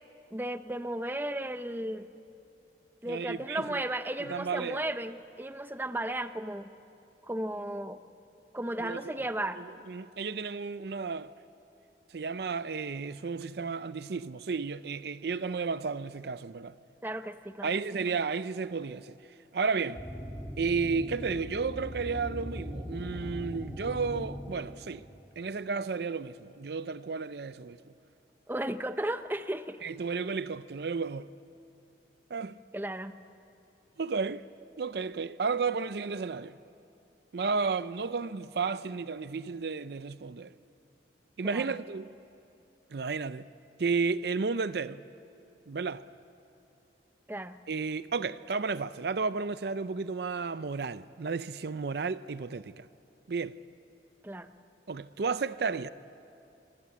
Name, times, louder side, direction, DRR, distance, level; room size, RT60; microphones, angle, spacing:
voice 1, 0.3-2.1 3.0-6.7 7.2-8.0 8.5-9.6 17.0-17.7 28.5-29.8 32.7-33.1 41.4-41.7 47.3-47.6 54.2-54.5, right 1 dB, 10° right, 0.7 m, -34 dB
voice 2, 3.1-3.8 4.3-4.8 8.8-9.2 9.9-11.3 12.1-16.8 17.6-19.2 19.5-20.0 20.6-25.0 25.4-27.8 29.8-31.3 32.3-32.6 34.0-34.4 34.8-36.6 37.3-40.5 41.4-42.1 42.9-43.5 43.8-45.0 45.7-46.0 47.7-52.9 53.3-53.6 54.9-55.9, right 4 dB, 60° right, 0.5 m, -32 dB
sound 1, 19.9-25.0, equal, 5° left, 2.2 m, -40 dB
25.5 x 24.5 x 8.5 m
head